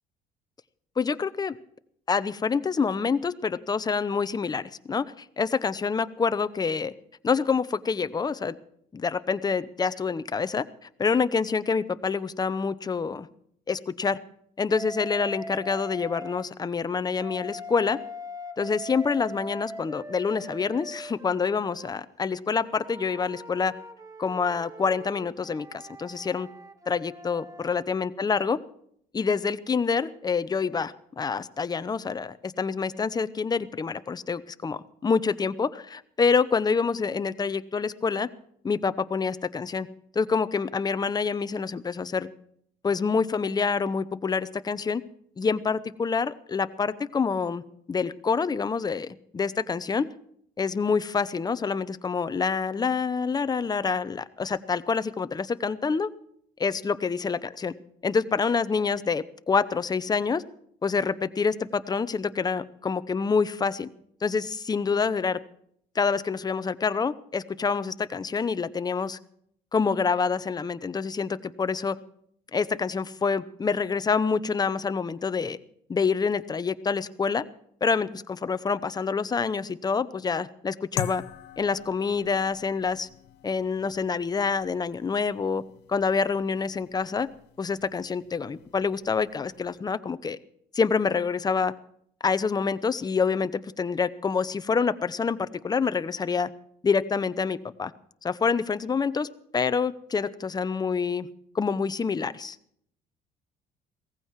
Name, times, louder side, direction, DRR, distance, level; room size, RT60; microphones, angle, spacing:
voice 1, 1.0-1.6 2.1-5.1 5.4-6.9 7.2-8.5 8.9-13.3 13.7-14.2 14.6-18.0 18.6-23.7 24.2-26.5 26.9-28.6 29.1-38.3 38.6-39.9 40.1-42.3 42.8-45.0 45.4-47.6 47.9-50.1 50.6-56.1 56.6-57.7 58.0-60.4 60.8-63.9 64.2-65.4 65.9-69.2 69.7-72.0 72.5-75.6 75.9-77.4 77.8-81.2 81.6-83.1 83.4-85.6 85.9-87.3 87.6-90.4 90.7-91.7 92.2-96.5 96.8-97.9 98.2-101.3 101.5-102.6, left 5 dB, 25° left, 13 dB, 0.8 m, -27 dB
Wind instrument woodwind instrument, 14.7-16.5 17.2-21.9 22.6-27.8, equal, 20° right, 1.2 m, -41 dB
sound 1, 81.0-89.8, left 12 dB, 85° left, 0.8 m, -43 dB
17.5 x 15.0 x 4.7 m, 0.66 s
cardioid pair, 110°, 17 cm